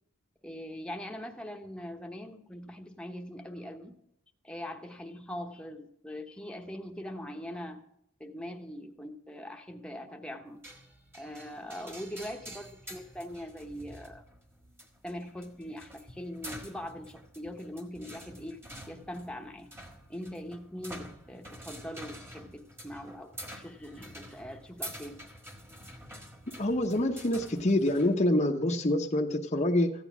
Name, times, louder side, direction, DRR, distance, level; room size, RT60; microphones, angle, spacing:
voice 1, 0.4-4.0 4.4-7.8 8.2-10.6 11.1-14.2 15.0-18.6 18.9-19.7 20.1-25.2, equal, 5° left, 3 dB, 1.0 m, -42 dB
sound 1, 10.6-28.1, equal, 10° right, 1.5 m, -48 dB
voice 2, 26.6-29.9, left 1 dB, 30° left, 1 dB, 0.8 m, -26 dB
14.5 x 9.0 x 6.1 m, 0.75 s
head